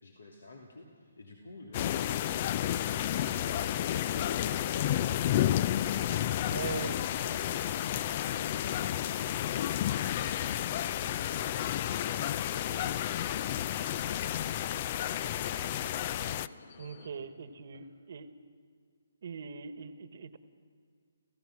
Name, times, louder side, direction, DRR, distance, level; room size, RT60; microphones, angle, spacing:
voice 1, 0.0-5.5 16.7-17.3 17.7-17.8, left 2 dB, 85° left, 0 dB, 2.9 m, -51 dB
sound 1, 1.7-16.5, left 11 dB, 35° left, 0.5 m, -31 dB
sound 2, 6.2-17.1, left 5 dB, 50° left, 1.6 m, -52 dB
voice 2, 6.5-7.0 16.8-18.3 19.2-20.4, right 6 dB, 55° right, 11 dB, 1.4 m, -41 dB
29.5 x 16.0 x 6.2 m, 2.1 s
hypercardioid pair, 155°, 0 cm